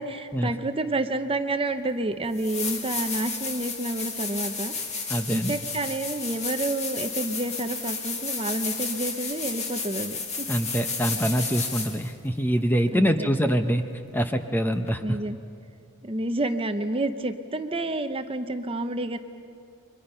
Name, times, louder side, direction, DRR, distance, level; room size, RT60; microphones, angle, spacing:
voice 1, 0.0-10.5 12.9-13.3 15.0-15.4 16.0-19.2, right 2 dB, 25° right, 8 dB, 0.8 m, -29 dB
sound 1, 1.8-1.9 2.3-12.1 14.9-15.0, left 4 dB, 30° left, 1.8 m, -32 dB
voice 2, 5.1-5.5 10.5-13.8 14.1-15.2, equal, 10° left, 7 dB, 0.8 m, -25 dB
30.0 x 24.0 x 5.6 m, 2.4 s
head